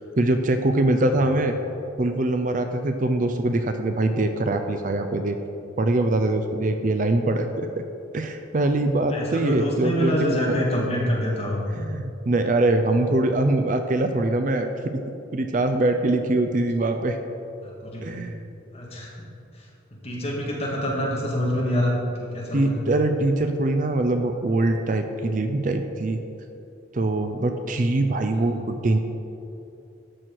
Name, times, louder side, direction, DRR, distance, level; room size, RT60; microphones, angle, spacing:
voice 1, 0.0-1.5 2.0-5.4 5.8-7.7 8.1-10.2 10.5-10.6 11.7-15.0 15.3-17.2 18.0-18.4 22.5-26.2 26.9-29.0, right 2 dB, 40° right, 6 dB, 0.5 m, -23 dB
voice 2, 9.1-11.6 17.6-18.1 18.7-19.1 19.5-19.6 20.0-22.8 28.3-28.6, equal, 30° left, -4 dB, 1.9 m, -26 dB
12.5 x 6.1 x 4.6 m, 2.8 s
head